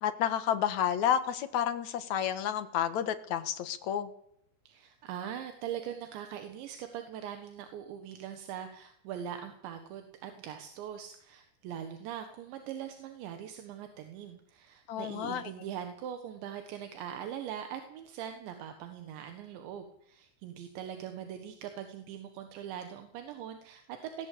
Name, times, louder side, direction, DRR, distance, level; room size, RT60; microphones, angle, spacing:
voice 1, 0.0-4.1 14.9-15.5, left 9 dB, 65° left, 9 dB, 1.9 m, -30 dB
voice 2, 4.7-24.3, right 9 dB, 80° right, 6 dB, 3.8 m, -42 dB
19.0 x 16.0 x 8.6 m, 0.70 s
omnidirectional pair, 5.1 m